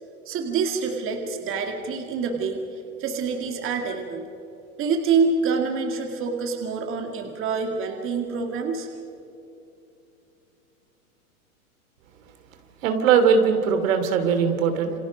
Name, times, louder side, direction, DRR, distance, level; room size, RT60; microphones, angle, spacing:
voice 1, 0.3-2.6 3.0-4.3 4.8-8.9, right 5 dB, 30° right, 4 dB, 2.3 m, -26 dB
voice 2, 12.8-14.9, right 6 dB, 65° right, 7 dB, 3.0 m, -20 dB
28.5 x 26.0 x 5.2 m, 2.7 s
hypercardioid pair, 125°, 43 cm